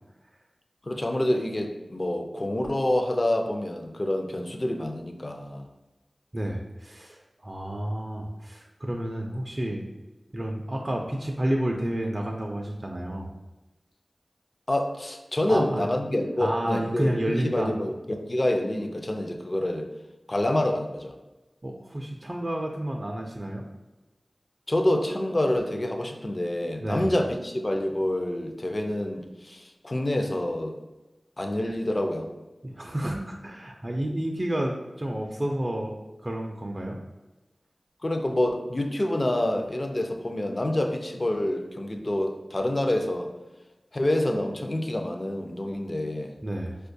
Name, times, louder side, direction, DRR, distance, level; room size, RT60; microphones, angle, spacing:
voice 1, 0.8-5.7 14.7-19.9 20.3-21.1 24.7-30.8 31.4-32.3 38.0-43.3 43.9-46.3, left 1 dB, 45° left, 4 dB, 0.4 m, -27 dB
voice 2, 6.3-9.9 10.3-13.3 15.5-15.9 16.4-17.7 21.6-23.7 26.8-27.1 32.6-35.9 36.2-37.0 46.4-46.8, right 1 dB, 35° right, 0 dB, 0.4 m, -30 dB
4.2 x 2.2 x 2.6 m, 1.1 s
wide cardioid pair, 40°, 0 cm